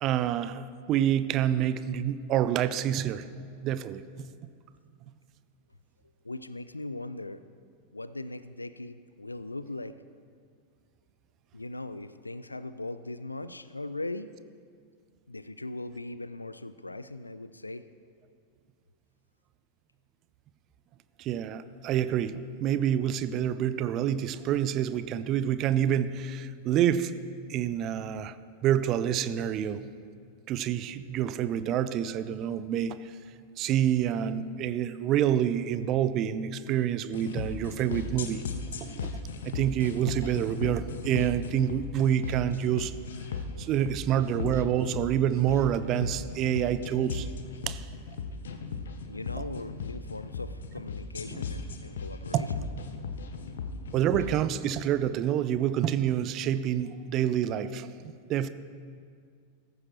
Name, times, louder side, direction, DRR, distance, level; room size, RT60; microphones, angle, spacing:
voice 1, 0.0-4.0 21.2-27.1 27.5-28.4 28.6-29.8 30.5-33.1 33.6-38.4 38.9-39.1 39.4-43.0 43.6-47.3 47.7-47.8 51.3-51.4 52.3-52.5 53.9-57.9 58.3-58.5, right 10 dB, 35° right, 14 dB, 0.5 m, -27 dB
voice 2, 6.2-7.4 7.9-10.0 11.5-14.4 15.3-17.9 43.5-43.7 49.1-52.6 53.4-53.6, left 2 dB, 85° left, 14 dB, 0.4 m, -39 dB
sound 1, 37.1-54.3, left 5 dB, 65° left, 0.9 m, -37 dB
16.0 x 14.5 x 3.1 m, 2.1 s
figure-of-eight pair, 90°, 0 cm